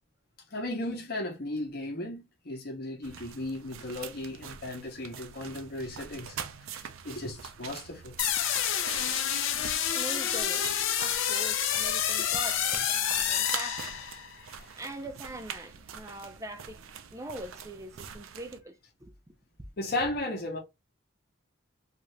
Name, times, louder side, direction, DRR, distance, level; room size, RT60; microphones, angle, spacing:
voice 1, 0.5-6.4 6.7-8.1 12.2-12.3 19.8-20.6, left 1 dB, 50° left, 0.8 m, -35 dB
sound 1, 3.0-18.6, right 7 dB, 80° right, 0.5 m, -44 dB
sound 2, 8.2-14.3, left 9 dB, 70° left, 0.5 m, -28 dB
voice 2, 9.9-10.7 11.0-13.9 14.7-16.8 17.1-19.1, right 1 dB, 15° right, 0.4 m, -42 dB
2.7 x 2.5 x 3.1 m
head